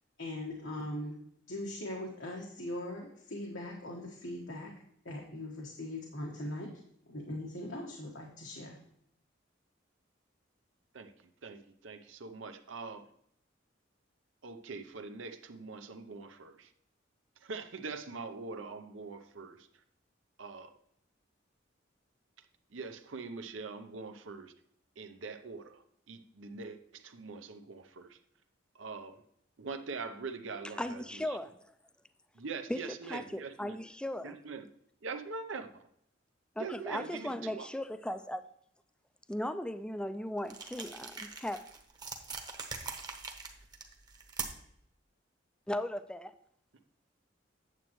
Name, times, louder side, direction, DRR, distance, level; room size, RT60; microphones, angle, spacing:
voice 1, 0.2-1.2 1.5-4.7 5.0-6.7 7.1-8.8, left 1 dB, 85° left, -1 dB, 1.3 m, -40 dB
voice 2, 10.9-13.1 14.4-16.7 17.4-19.7 20.4-20.8 22.7-24.5 25.0-28.2 28.7-29.2 29.6-31.4 32.3-33.8 34.2-34.7 35.0-35.9 36.6-37.7, right 4 dB, 85° right, 8 dB, 0.7 m, -43 dB
voice 3, 30.8-31.7 32.7-32.8 33.1-34.4 36.6-38.4 39.3-41.7 45.7-46.3, left 1 dB, 5° left, 11 dB, 0.3 m, -37 dB
sound 1, 40.5-44.8, right 4 dB, 20° right, 0.9 m, -43 dB
9.0 x 7.5 x 3.1 m, 0.71 s
head